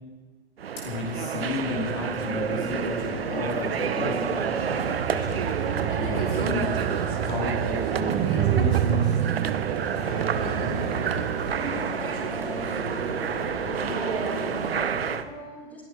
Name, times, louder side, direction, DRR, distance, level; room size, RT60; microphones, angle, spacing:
sound 1, 0.6-15.2, right 8 dB, 60° right, 0.9 m, -29 dB
voice 1, 0.8-4.3 5.1-9.1, left 3 dB, 30° left, -1 dB, 2.8 m, -33 dB
sound 2, 1.5-15.2, left 3 dB, 50° left, 3.0 m, -37 dB
sound 3, 4.6-11.9, right 12 dB, 20° right, 0.7 m, -28 dB
voice 2, 12.2-13.1 13.9-15.8, equal, 5° left, -2 dB, 3.9 m, -40 dB
28.0 x 11.5 x 4.1 m, 1.3 s
figure-of-eight pair, 110°, 34 cm